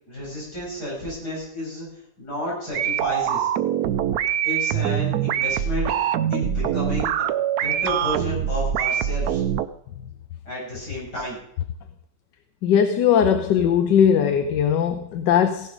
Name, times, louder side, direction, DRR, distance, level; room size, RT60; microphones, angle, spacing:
voice 1, 0.1-1.9 2.2-3.5 4.4-5.9 6.3-7.3 7.6-9.4 10.4-11.4, left 1 dB, 65° left, -6 dB, 8.0 m, -31 dB
sound 1, 2.7-9.7, right 10 dB, 70° right, 1.1 m, -24 dB
voice 2, 12.6-15.7, left 8 dB, 80° left, 9 dB, 1.5 m, -19 dB
16.0 x 11.0 x 5.0 m, 0.75 s
omnidirectional pair, 1.9 m